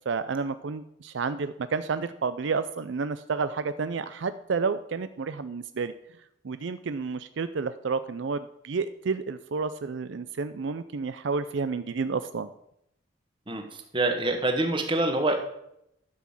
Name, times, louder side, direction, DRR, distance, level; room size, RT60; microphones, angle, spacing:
voice 1, 0.0-5.9 6.4-12.5, right 4 dB, 70° right, 12 dB, 0.5 m, -30 dB
voice 2, 13.9-15.4, right 2 dB, 25° right, 5 dB, 1.4 m, -25 dB
12.0 x 6.1 x 7.4 m, 0.78 s
head